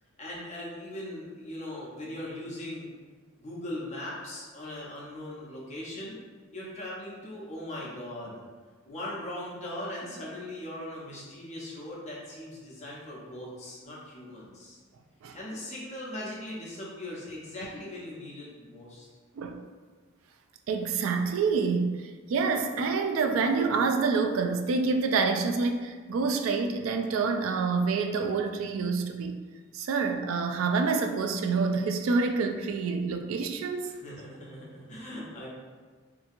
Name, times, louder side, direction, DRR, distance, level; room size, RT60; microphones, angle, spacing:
voice 1, 0.2-2.9 3.4-6.2 6.5-8.4 8.8-14.8 15.3-19.1 33.8-35.5, left 1 dB, 35° left, -5 dB, 0.7 m, -39 dB
voice 2, 20.7-29.4 29.7-33.9, right 4 dB, 85° right, 6 dB, 0.3 m, -27 dB
2.8 x 2.6 x 2.5 m, 1.4 s
head